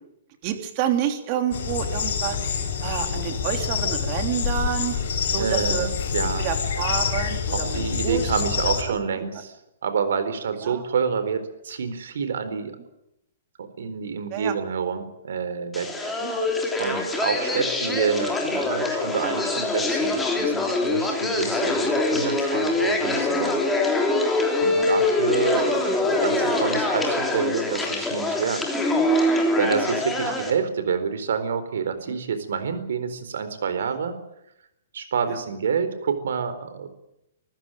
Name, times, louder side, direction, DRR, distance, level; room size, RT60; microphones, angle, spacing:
voice 1, 0.4-2.4 2.8-4.9 5.3-5.9 6.4-8.3 8.6-9.0 10.6-10.8 14.3-14.6 16.0-16.4 17.5-17.6 20.9-21.2 24.7-24.9 25.5-26.5 28.9-29.1 30.2-30.4 32.1-32.2 33.8-33.9 35.3-35.4, right 10 dB, 35° right, 6 dB, 3.3 m, -29 dB
sound 1, 1.5-8.8, left 7 dB, 65° left, 6.7 m, -26 dB
voice 2, 5.4-6.5 7.5-9.6 9.8-12.8 13.6-15.9 16.8-23.6 24.6-28.7 29.6-34.2 34.9-36.9, right 6 dB, 75° right, 11 dB, 4.2 m, -28 dB
sound 2, 15.7-30.5, left 2 dB, 5° left, 3.2 m, -24 dB
26.0 x 15.0 x 9.2 m, 0.83 s
hypercardioid pair, 165°, 0 cm